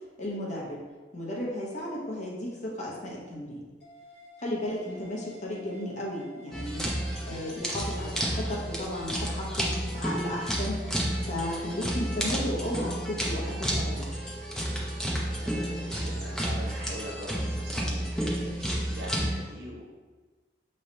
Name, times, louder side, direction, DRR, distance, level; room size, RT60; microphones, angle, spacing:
voice 1, 0.2-0.8 1.1-3.6 4.4-6.8 7.3-10.9 11.3-14.1, left 1 dB, 45° left, -4 dB, 1.0 m, -34 dB
sound 1, 3.8-12.8, left 1 dB, 65° left, 0.8 m, -52 dB
sound 2, 6.5-19.3, equal, 5° left, 0.6 m, -31 dB
Wind instrument woodwind instrument, 10.9-18.3, right 3 dB, 40° right, 0.9 m, -49 dB
voice 2, 15.4-19.9, right 1 dB, 60° right, -3 dB, 1.0 m, -42 dB
5.5 x 3.2 x 2.8 m, 1.3 s
head